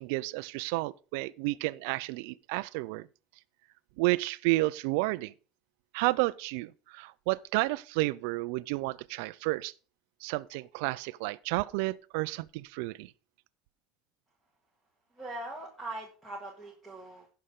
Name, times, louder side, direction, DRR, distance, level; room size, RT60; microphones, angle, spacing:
voice 1, 0.0-3.1 4.0-5.3 5.9-9.7 10.2-13.1, right 21 dB, 75° right, 0.4 m, -31 dB
voice 2, 15.2-17.3, right 2 dB, ahead, 1.9 m, -41 dB
17.0 x 5.6 x 3.7 m
cardioid pair, 140°, 0 cm